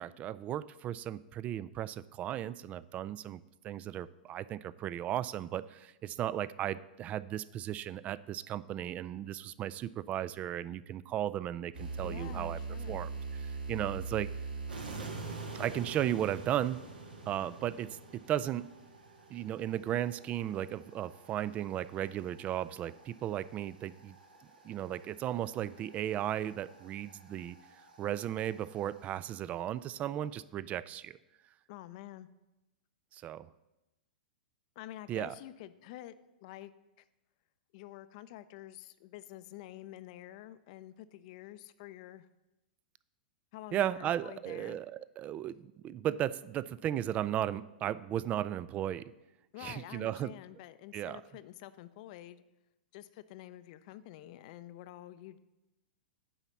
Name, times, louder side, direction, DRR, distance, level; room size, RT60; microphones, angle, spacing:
voice 1, 0.0-12.6 12.9-14.3 15.5-16.8 17.3-18.7 19.3-24.2 24.6-27.6 28.0-31.2 33.1-33.5 35.1-35.4 43.7-49.1 49.6-50.3 50.9-51.2, right 11 dB, 30° right, 18 dB, 0.3 m, -35 dB
sound 1, 11.7-29.5, right 4 dB, 85° right, 1.6 m, -45 dB
voice 2, 12.0-13.0 31.7-32.3 34.8-36.1 36.4-36.7 37.7-42.3 43.5-44.8 49.5-52.4 52.9-55.4, left 14 dB, 50° left, 14 dB, 0.5 m, -48 dB
9.9 x 4.0 x 7.2 m, 0.99 s
hypercardioid pair, 115°, 5 cm